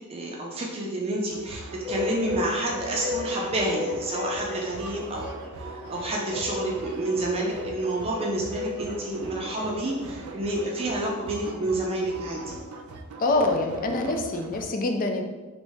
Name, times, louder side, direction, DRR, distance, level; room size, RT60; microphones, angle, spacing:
voice 1, 0.1-5.3 5.6-12.5, right 1 dB, 30° right, -2 dB, 0.4 m, -29 dB
sound 1, 1.3-14.6, right 3 dB, 90° right, 0.4 m, -41 dB
sound 2, 1.8-10.1, left 3 dB, 5° left, 1.0 m, -35 dB
voice 2, 13.2-15.2, left 2 dB, 40° left, 4 dB, 0.4 m, -25 dB
3.1 x 2.6 x 3.4 m, 1.2 s
head